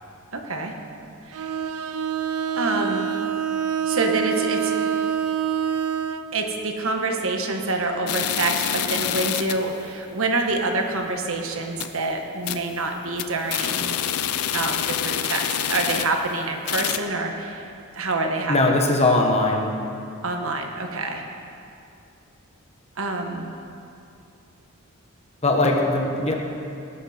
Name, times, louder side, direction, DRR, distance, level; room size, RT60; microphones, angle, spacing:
voice 1, 0.3-0.7 1.3-1.5 2.5-3.1 3.8-4.7 6.3-14.0 14.5-17.7 17.9-18.6 20.2-21.2 23.0-23.5, right 3 dB, 65° right, 3 dB, 1.4 m, -26 dB
Bowed string instrument, 1.3-6.3, right 8 dB, 90° right, 0.5 m, -26 dB
sound 1, 8.1-9.7 10.1-10.2 10.5-10.6 11.1-11.3 11.6-12.0 12.5-12.8 13.1-16.3 16.6-17.0, left 10 dB, 90° left, 0.6 m, -27 dB
voice 2, 18.5-19.8 25.4-26.3, left 2 dB, 30° left, 1 dB, 1.5 m, -20 dB
19.0 x 10.5 x 4.4 m, 2.6 s
head